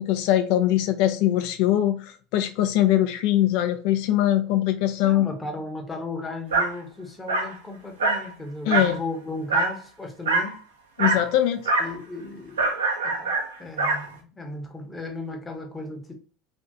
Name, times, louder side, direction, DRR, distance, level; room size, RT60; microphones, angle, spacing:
voice 1, 0.0-5.3 8.6-9.0 11.0-11.6, left 12 dB, 60° left, 0.3 m, -22 dB
voice 2, 5.0-10.6 11.8-12.7 13.0-16.1, left 2 dB, 15° left, 0.8 m, -35 dB
Dog, 6.5-6.7 7.3-7.5 8.0-8.3 8.7-9.0 9.5-9.8 10.3-10.5 11.0-11.3 11.6-11.9 12.6-14.1, right 3 dB, 75° right, 0.6 m, -24 dB
2.8 x 2.5 x 2.3 m
figure-of-eight pair, 70°, 0 cm